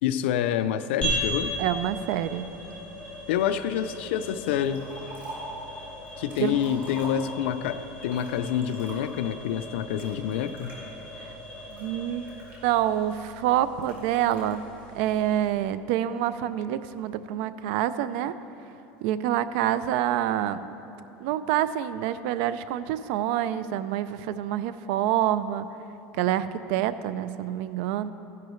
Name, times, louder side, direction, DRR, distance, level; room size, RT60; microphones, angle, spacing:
voice 1, 0.0-1.5 3.3-4.9 6.2-10.8, left 9 dB, 90° left, 12 dB, 0.5 m, -27 dB
sound 1, 1.0-15.6, equal, 20° left, 2.3 m, -38 dB
voice 2, 1.6-2.5 6.4-6.6 11.7-12.2 12.6-14.6 14.9-18.3 19.0-20.6 21.2-25.7 26.2-28.1, right 11 dB, 65° right, 14 dB, 0.4 m, -27 dB
Liquid, 4.6-5.6 6.1-7.6 8.1-9.3 10.0-10.8 11.4-13.0 13.8-14.5, right 2 dB, 35° right, 2.5 m, -45 dB
14.5 x 10.5 x 3.1 m, 2.9 s
cardioid pair, 160°, 6 cm